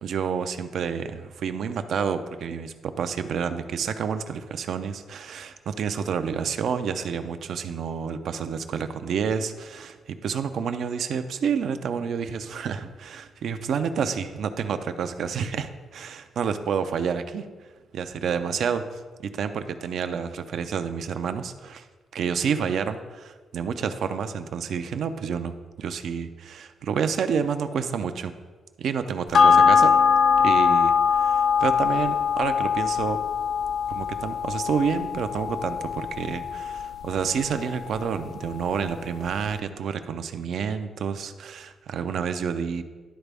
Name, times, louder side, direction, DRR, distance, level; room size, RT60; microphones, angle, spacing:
voice 1, 0.0-17.5 17.9-19.0 19.3-21.9 22.1-28.3 28.8-29.9 30.4-33.2 33.9-42.8, right 6 dB, 70° right, 9 dB, 0.5 m, -29 dB
sound 1, 29.3-38.1 38.5-38.6, left 6 dB, 60° left, 0.3 m, -22 dB
11.5 x 4.0 x 3.4 m, 1.3 s
cardioid pair, 100°, 0 cm